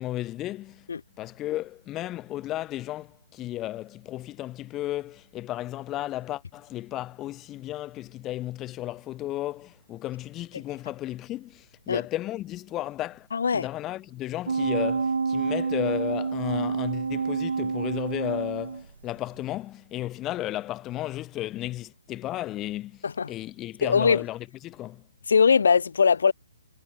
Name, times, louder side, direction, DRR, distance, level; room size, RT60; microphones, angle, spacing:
voice 1, 0.0-0.9 1.2-13.3 13.5-25.0, left 15 dB, 15° left, 1.4 m, -34 dB
voice 2, 13.3-13.7 23.0-23.3 23.8-24.2 25.3-26.3, left 6 dB, 70° left, 1.9 m, -21 dB
sound 1, 14.5-19.0 19.4-19.5, right 5 dB, 85° right, 3.2 m, -28 dB
hypercardioid pair, 170°, 0 cm